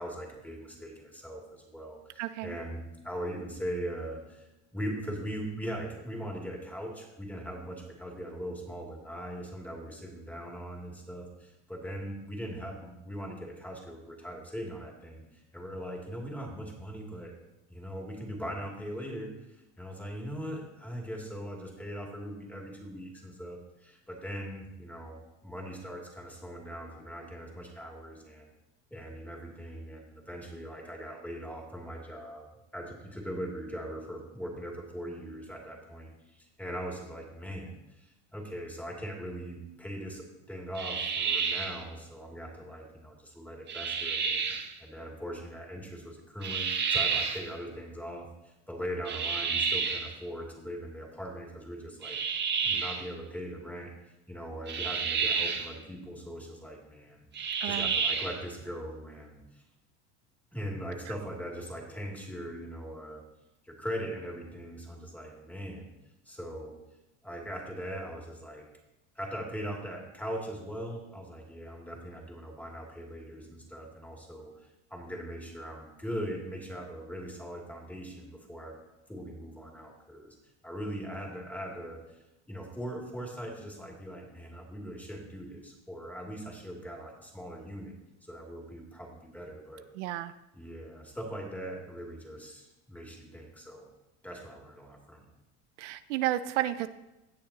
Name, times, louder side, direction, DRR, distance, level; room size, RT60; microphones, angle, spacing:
voice 1, 0.0-17.3 17.7-19.3 19.8-28.5 28.9-32.5 32.7-52.2 52.6-53.9 54.3-57.2 57.6-59.6 60.5-63.2 63.6-65.9 66.3-66.7 67.2-68.7 69.1-78.8 79.1-80.4 80.6-82.2 82.5-87.9 88.2-89.9 90.5-93.9 94.2-95.2, equal, 5° left, -1 dB, 2.6 m, -40 dB
voice 2, 2.2-2.6 57.6-58.0 61.1-61.2 89.9-90.3 95.8-96.9, right 14 dB, 80° right, 13 dB, 0.6 m, -32 dB
sound 1, 40.8-41.8 43.7-44.7 46.4-47.5 49.1-50.1 52.0-53.1 54.7-55.7 57.3-58.4, right 6 dB, 30° right, 1.3 m, -30 dB
17.5 x 6.5 x 2.9 m, 0.96 s
supercardioid pair, 100°, 35 cm